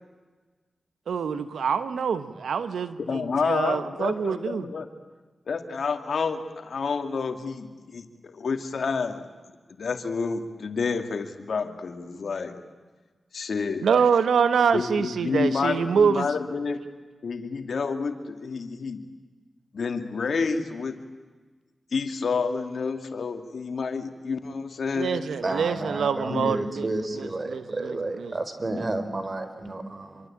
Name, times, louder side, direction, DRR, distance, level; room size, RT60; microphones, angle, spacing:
voice 1, 1.1-4.7 13.8-16.3 24.9-26.9 27.2-28.3 28.7-28.8, right 6 dB, 90° right, 1.1 m, -25 dB
voice 2, 3.0-4.9 5.5-9.2 9.7-12.6 13.3-13.9 14.7-16.8 17.2-19.0 19.7-21.0 21.9-25.2 26.3-26.5, left 5 dB, 75° left, 2.4 m, -29 dB
voice 3, 25.4-30.3, right 2 dB, 45° right, 4.0 m, -31 dB
27.5 x 23.5 x 8.8 m
cardioid pair, 45°, 0 cm